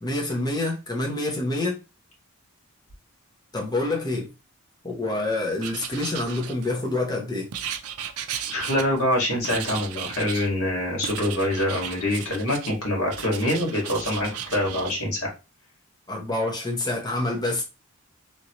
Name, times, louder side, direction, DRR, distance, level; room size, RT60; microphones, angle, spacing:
voice 1, 0.0-1.8 3.5-4.3 4.8-7.5 16.1-17.6, left 2 dB, 20° left, 0.7 m, -27 dB
Writing, 5.6-6.9 7.5-9.1 9.4-10.5 11.0-12.8 13.1-14.9, right 9 dB, 75° right, 0.4 m, -35 dB
voice 2, 8.5-15.3, left 1 dB, 70° left, 1.7 m, -25 dB
3.0 x 2.7 x 2.9 m
head